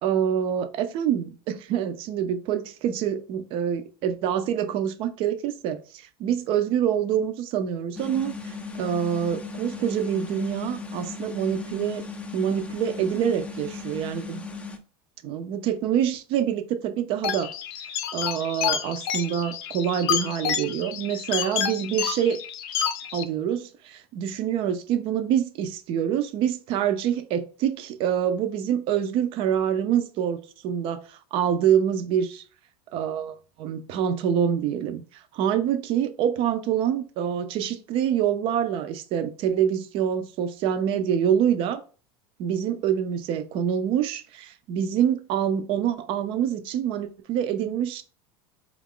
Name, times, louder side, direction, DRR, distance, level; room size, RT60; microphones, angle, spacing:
voice 1, 0.0-12.1 12.3-14.4 15.2-17.5 18.1-22.4 23.1-32.4 32.9-41.8 42.4-48.0, right 9 dB, 45° right, 0.5 m, -26 dB
sound 1, 8.0-14.8, left 4 dB, 10° left, 0.4 m, -37 dB
sound 2, 17.2-23.2, left 9 dB, 70° left, 0.5 m, -29 dB
4.0 x 2.4 x 3.6 m
cardioid pair, 155°, 13 cm